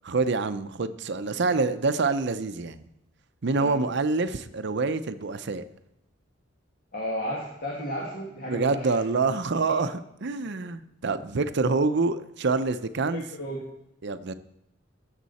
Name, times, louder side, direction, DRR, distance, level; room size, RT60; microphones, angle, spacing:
voice 1, 0.0-2.9 3.4-5.6 8.5-9.9 10.2-13.2 14.0-14.3, right 3 dB, 60° right, 11 dB, 0.6 m, -26 dB
voice 2, 6.9-8.9 9.7-9.8 10.4-10.5 13.1-13.6, equal, 50° left, -3 dB, 2.1 m, -33 dB
18.0 x 7.4 x 4.2 m, 0.85 s
head